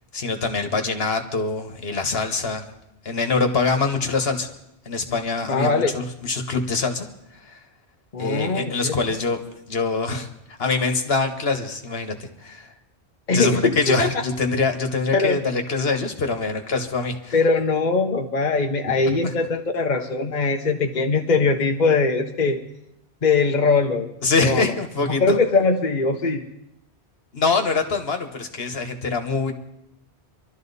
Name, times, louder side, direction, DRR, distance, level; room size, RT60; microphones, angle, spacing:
voice 1, 0.1-2.7 3.0-4.5 4.8-7.1 7.4-7.6 8.2-9.4 9.7-10.3 10.6-12.7 13.3-17.3 19.1-19.3 24.2-25.2 27.3-29.5, left 4 dB, 65° left, 6 dB, 1.6 m, -24 dB
voice 2, 5.5-5.9 8.1-8.9 13.3-14.2 15.1-15.4 17.3-22.6 23.2-24.1 24.4-24.7 25.1-26.4, left 4 dB, 45° left, 3 dB, 1.0 m, -21 dB
23.5 x 12.5 x 4.1 m, 0.85 s
omnidirectional pair, 1.1 m